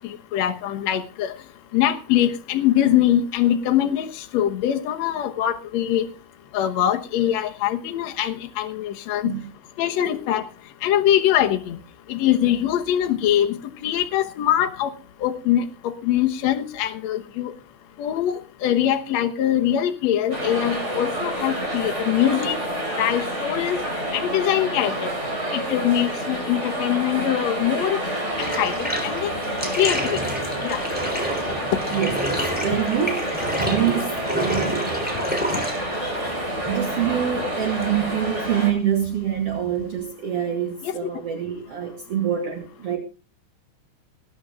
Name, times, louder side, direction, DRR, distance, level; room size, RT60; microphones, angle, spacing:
voice 1, 0.0-1.4 1.7-6.1 6.5-9.3 9.8-10.5 10.8-11.8 12.1-14.9 15.2-17.5 18.0-22.6 23.0-23.8 24.1-25.1 25.5-28.0 28.6-29.3 29.8-30.2 30.6-30.8 40.8-41.1, left 11 dB, 65° left, 2.2 m, -23 dB
sound 1, 20.3-38.7, right 1 dB, 20° right, 4.6 m, -28 dB
Bathtub (filling or washing), 28.3-40.0, equal, 5° right, 3.2 m, -30 dB
voice 2, 31.9-33.3 33.6-34.8 36.6-43.0, right 9 dB, 55° right, 2.5 m, -25 dB
20.0 x 10.0 x 3.7 m
omnidirectional pair, 3.5 m